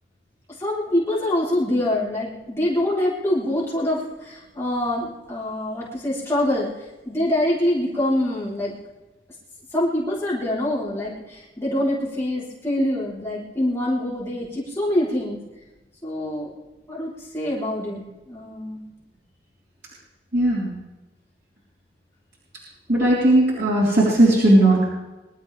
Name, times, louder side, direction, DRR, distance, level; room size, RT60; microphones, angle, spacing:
voice 1, 0.6-6.7 7.1-8.8 9.7-15.4 16.0-16.5 16.9-18.8, left 1 dB, 15° left, -7 dB, 4.0 m, -25 dB
voice 2, 20.3-20.7 22.9-24.8, right 1 dB, 80° right, -7 dB, 4.6 m, -17 dB
24.0 x 12.5 x 3.5 m, 1.1 s
head